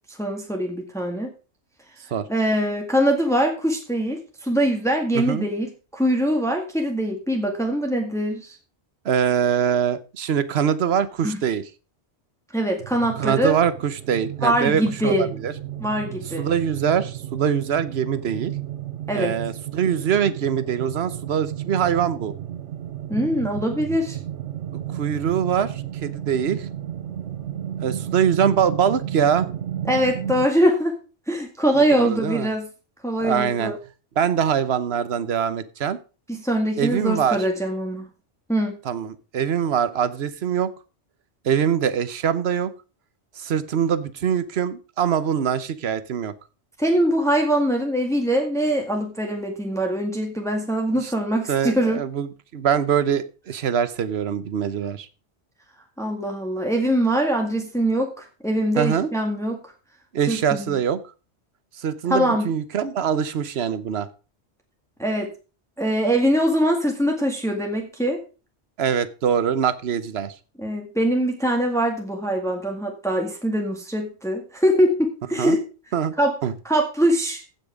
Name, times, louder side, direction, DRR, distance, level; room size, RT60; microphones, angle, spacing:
voice 1, 0.1-1.3 2.3-8.5 11.2-11.4 12.5-13.6 14.4-15.3 15.8-16.5 19.1-19.3 23.1-24.2 29.9-31.0 31.3-32.7 33.0-33.8 36.4-38.1 38.5-38.8 46.8-52.0 56.0-59.6 60.3-60.7 62.1-62.5 65.0-65.3 65.8-68.2 70.6-75.6 76.2-76.4 76.7-77.4, equal, 5° left, 2 dB, 1.9 m, -23 dB
voice 2, 5.1-5.5 9.0-11.6 13.2-15.5 16.4-18.5 19.1-22.3 24.9-26.7 27.8-29.5 31.7-32.5 33.2-33.7 34.2-36.0 36.8-37.5 38.8-40.7 41.4-42.7 43.4-46.3 51.0-51.1 51.5-55.1 58.8-59.1 60.1-61.0 61.8-64.1 68.8-70.3 75.4-75.6 75.9-76.1 76.4-76.5, right 8 dB, 65° right, 14 dB, 1.2 m, -23 dB
sound 1, 12.8-30.5, right 11 dB, 85° right, 1.1 m, -33 dB
15.5 x 6.1 x 5.0 m, 0.34 s
omnidirectional pair, 1.2 m